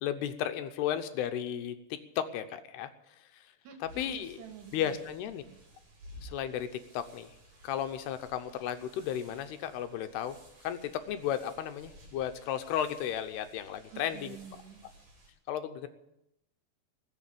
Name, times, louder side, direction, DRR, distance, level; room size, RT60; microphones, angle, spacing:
voice 1, 0.0-2.9 3.2-3.5 4.0-4.4 4.7-5.4 6.2-7.4 7.6-14.3 15.5-15.9, left 10 dB, 80° left, 9 dB, 2.9 m, -34 dB
voice 2, 3.6-5.0 5.5-5.6 13.9-14.8, right 7 dB, 80° right, 6 dB, 3.9 m, -48 dB
sound 1, 3.9-15.3, equal, 45° right, 5.5 m, -55 dB
20.5 x 7.0 x 8.7 m, 0.85 s
omnidirectional pair, 4.8 m